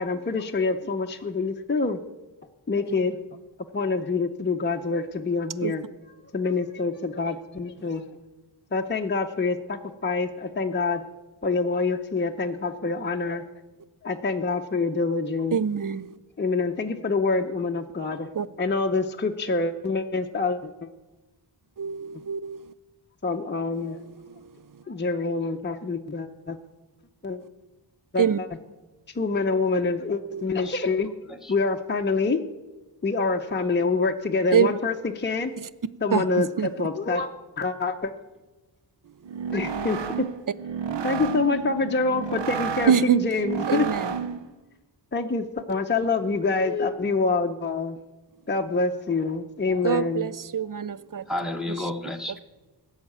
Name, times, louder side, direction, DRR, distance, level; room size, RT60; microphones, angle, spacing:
voice 1, 0.0-2.0 2.7-3.2 3.7-5.8 6.3-8.0 8.7-11.0 11.4-13.4 14.0-15.6 16.4-18.3 18.6-20.7 23.2-24.0 24.9-26.6 27.2-27.4 28.1-28.2 29.1-31.1 31.5-32.4 33.0-35.5 36.0-37.3 37.6-38.1 39.5-40.3 41.0-44.1 45.1-48.0 48.5-50.3, left 3 dB, 25° left, 0.7 m, -26 dB
voice 2, 15.5-16.2 18.3-18.5 21.8-22.7 23.8-24.8 28.2-28.4 30.3-30.4 34.5-34.7 35.6-35.7 36.1-36.7 39.3-39.5 42.9-44.2 49.8-51.3, right 7 dB, 50° right, 0.5 m, -26 dB
sound 1, 39.2-44.5, right 7 dB, 80° right, 0.8 m, -31 dB
voice 3, 51.3-52.4, left 1 dB, ahead, 1.0 m, -31 dB
16.5 x 6.4 x 8.6 m
wide cardioid pair, 100°, 42 cm